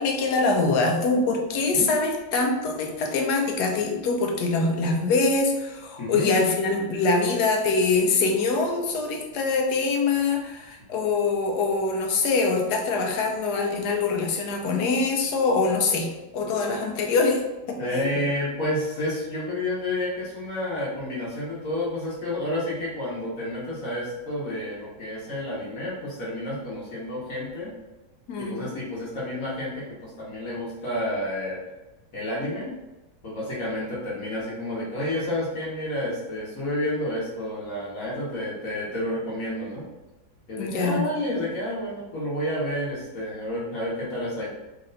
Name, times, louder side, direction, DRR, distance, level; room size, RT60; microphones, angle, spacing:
voice 1, 0.0-17.4 17.7-18.0 28.3-28.6 40.6-41.0, left 3 dB, 75° left, 3 dB, 1.2 m, -24 dB
voice 2, 6.0-6.3 17.8-27.7 28.4-31.6 32.1-32.7 33.2-39.9 40.5-44.5, left 1 dB, 60° left, -6 dB, 1.4 m, -30 dB
3.2 x 2.9 x 3.8 m, 1.1 s
omnidirectional pair, 1.7 m